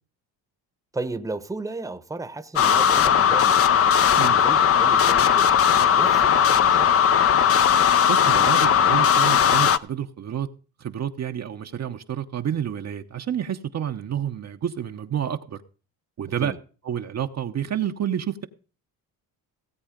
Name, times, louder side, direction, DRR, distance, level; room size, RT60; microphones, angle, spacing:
voice 1, 0.9-3.8 4.2-6.9 16.4-16.6, right 2 dB, 10° right, 1.0 m, -34 dB
sound 1, 2.6-9.8, left 8 dB, 40° left, 0.7 m, -18 dB
voice 2, 8.1-10.5 10.8-15.6 16.2-16.5 16.9-18.5, right 9 dB, 45° right, 0.9 m, -29 dB
17.0 x 8.0 x 5.1 m
cardioid pair, 95°, 37 cm